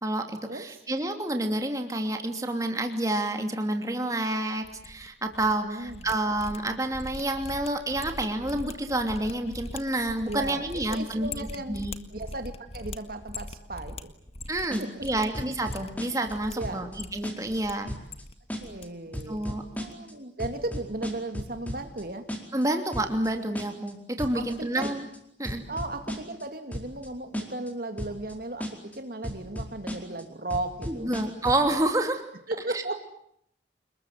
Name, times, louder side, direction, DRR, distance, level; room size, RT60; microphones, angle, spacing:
voice 1, 0.0-11.9 14.5-17.9 19.3-19.6 22.5-25.1 25.4-25.6 30.9-32.2 32.7-32.8, right 1 dB, 20° right, 5 dB, 2.8 m, -29 dB
sound 1, 4.6-5.5 5.8-14.7 15.0-15.3 15.6-16.5 16.9-17.7 18.0-18.8 19.1-19.5 19.7-19.9, left 2 dB, 35° left, 1.7 m, -42 dB
voice 2, 5.6-6.1 10.3-11.8 12.1-14.1 14.8-15.3 16.6-16.9 18.6-22.3 24.3-24.9 25.7-31.1 32.5-32.9, right 2 dB, 55° right, 7 dB, 2.3 m, -36 dB
sound 2, 14.7-15.1 15.3-16.3 16.6-17.0 17.2-17.6 17.9-18.2 18.5-18.9 19.1-20.1 20.4-22.0 22.3-22.6 22.9-23.3 23.6-23.9 24.2-24.5 24.8-25.2 25.5-26.4 26.7-27.1 27.3-27.7 28.0-28.3 28.6-29.0 29.2-30.2 30.5-31.7, equal, 10° left, 4.5 m, -35 dB
29.0 x 21.0 x 9.2 m, 0.72 s
head